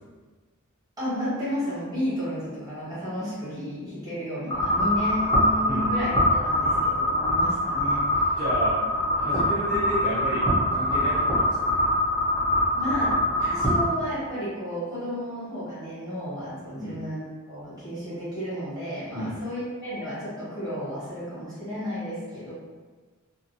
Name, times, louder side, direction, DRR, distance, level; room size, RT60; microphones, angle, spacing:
voice 1, 1.0-6.1 6.4-8.3 12.7-22.5, equal, 20° right, -11 dB, 1.3 m, -32 dB
sound 1, 4.5-13.8, left 1 dB, 15° left, 0.7 m, -24 dB
voice 2, 8.4-8.8 9.2-11.8 16.8-17.0 19.1-19.4, equal, 35° right, -11 dB, 0.6 m, -32 dB
2.7 x 2.3 x 2.5 m, 1.4 s
head